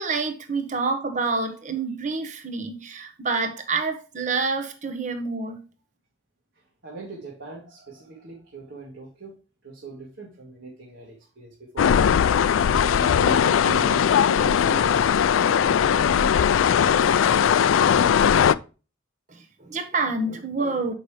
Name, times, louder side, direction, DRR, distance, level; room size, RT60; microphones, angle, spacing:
voice 1, 0.0-5.6 19.3-20.9, right 3 dB, 40° right, 1.1 m, -27 dB
voice 2, 6.8-9.3 9.6-11.9 12.7-17.1, right 3 dB, 65° right, 1.8 m, -39 dB
sound 1, 11.8-18.5, left 8 dB, 80° left, 0.3 m, -19 dB
8.1 x 5.4 x 3.3 m
head